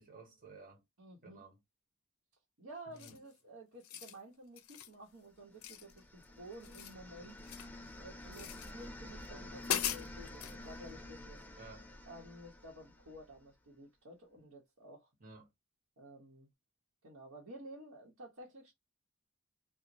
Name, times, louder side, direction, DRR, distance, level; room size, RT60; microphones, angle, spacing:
voice 1, 0.0-0.8 1.2-1.6 2.9-3.2 11.6-11.9 15.2-15.5, right 3 dB, 40° right, 1.1 m, -54 dB
voice 2, 1.0-1.4 2.6-7.4 8.0-11.4 12.1-15.1 16.0-16.5 17.0-18.7, right 1 dB, 70° right, 0.8 m, -52 dB
sound 1, 3.0-3.3 3.7-4.2 4.6-4.9 5.6-6.3 6.5-7.8 8.3-8.7 9.2-9.3 9.6-10.6, left 10 dB, 85° left, 0.5 m, -40 dB
sound 2, 5.5-13.5, left 1 dB, 10° left, 0.3 m, -50 dB
2.9 x 2.0 x 2.5 m
head